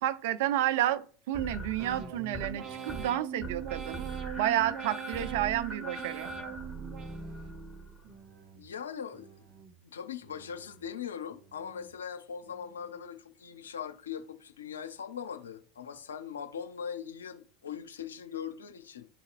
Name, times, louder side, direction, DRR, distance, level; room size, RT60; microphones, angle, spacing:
voice 1, 0.0-4.0 4.4-6.3, right 12 dB, 65° right, 0.5 m, -30 dB
sound 1, 1.3-2.5 2.8-3.1 3.4-8.2, right 2 dB, 15° right, 1.7 m, -41 dB
sound 2, 1.8-7.6 8.0-8.7 9.1-9.8 10.2-10.9 11.3-11.9 12.4-13.0, right 7 dB, 40° right, 1.0 m, -43 dB
voice 2, 8.5-9.4 9.8-19.1, left 7 dB, 80° left, 0.6 m, -40 dB
11.5 x 4.1 x 2.5 m
hypercardioid pair, 80°, 0 cm